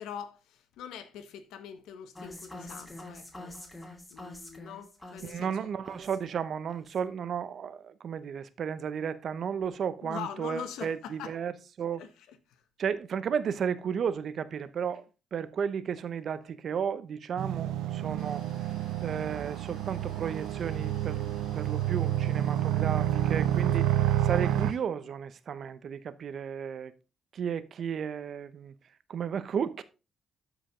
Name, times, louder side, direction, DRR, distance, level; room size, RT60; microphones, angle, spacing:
voice 1, 0.0-3.6 4.1-5.7 10.0-11.3 12.0-12.6, left 8 dB, 90° left, 1.3 m, -43 dB
sound 1, 2.2-6.4 6.7-7.1, left 1 dB, 20° left, 2.7 m, -46 dB
voice 2, 5.2-11.5 11.8-12.0 12.8-15.0 15.3-18.6 19.0-26.9 27.3-28.7 29.1-29.8, right 7 dB, 60° right, 0.8 m, -33 dB
sound 2, 17.4-24.7, right 12 dB, 90° right, 0.4 m, -29 dB
sound 3, 18.2-24.8, left 4 dB, 65° left, 5.1 m, -57 dB
12.5 x 5.1 x 3.7 m
cardioid pair, 90°, 0 cm